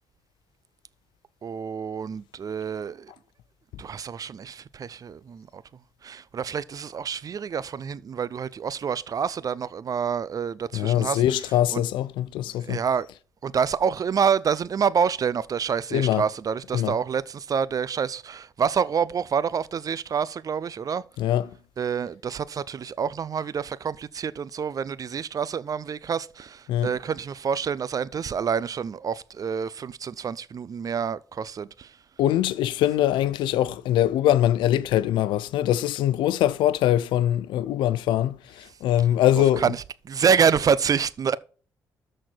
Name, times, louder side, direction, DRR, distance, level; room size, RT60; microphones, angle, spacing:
voice 1, 1.4-3.1 3.8-5.6 6.0-11.2 11.7-11.8 12.6-13.1 13.4-21.0 21.8-31.9 39.6-39.8 40.0-41.4, right 7 dB, 50° right, 0.6 m, -27 dB
voice 2, 10.7-12.8 15.9-16.2 16.7-16.9 21.2-21.5 26.7-26.9 32.2-39.6, left 12 dB, 80° left, 0.6 m, -23 dB
13.0 x 4.4 x 4.5 m
supercardioid pair, 55°, 8 cm